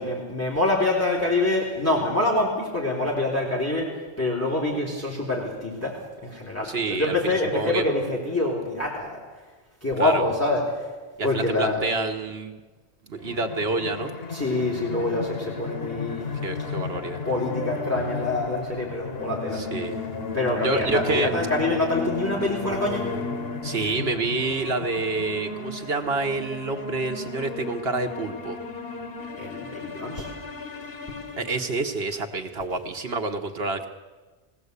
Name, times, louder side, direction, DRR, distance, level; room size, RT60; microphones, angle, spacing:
voice 1, 0.0-9.2 9.8-10.9 11.2-11.8 14.3-16.4 17.3-19.6 20.3-23.1 29.4-30.3, left 2 dB, 15° left, -3 dB, 3.5 m, -26 dB
voice 2, 6.6-7.8 10.0-10.2 11.2-12.6 13.1-14.1 16.4-17.2 19.5-20.0 20.6-21.3 23.6-28.6 31.4-33.9, right 3 dB, 75° right, 5 dB, 1.4 m, -28 dB
sound 1, 13.2-32.0, left 4 dB, 70° left, 1.5 m, -34 dB
21.0 x 16.5 x 8.2 m, 1.3 s
omnidirectional pair, 1.0 m